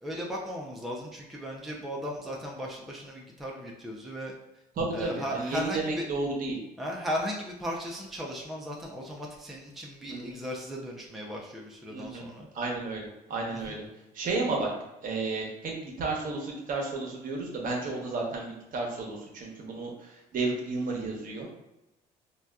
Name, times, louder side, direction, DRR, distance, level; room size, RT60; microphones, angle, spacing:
voice 1, 0.0-4.3 4.9-6.0 6.8-12.5 13.5-13.8, equal, ahead, -2 dB, 0.4 m, -36 dB
voice 2, 4.8-6.6 10.1-10.2 11.9-12.2 12.5-13.9 14.1-14.7 15.0-21.5, right 3 dB, 55° right, -1 dB, 0.9 m, -32 dB
3.9 x 2.3 x 2.3 m, 0.94 s
cardioid pair, 110°, 17 cm